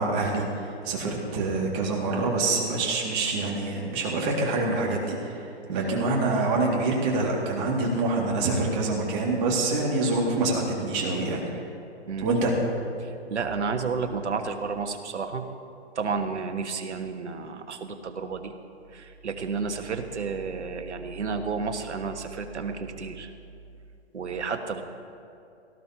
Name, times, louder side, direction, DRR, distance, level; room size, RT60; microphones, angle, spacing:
voice 1, 0.0-11.7 12.2-12.5, right 3 dB, 25° right, -2 dB, 2.2 m, -26 dB
voice 2, 13.0-15.4 15.9-18.5 18.9-23.3 24.1-24.8, right 5 dB, 80° right, 6 dB, 1.3 m, -31 dB
17.5 x 14.0 x 2.9 m, 2.6 s
hypercardioid pair, 150°, 34 cm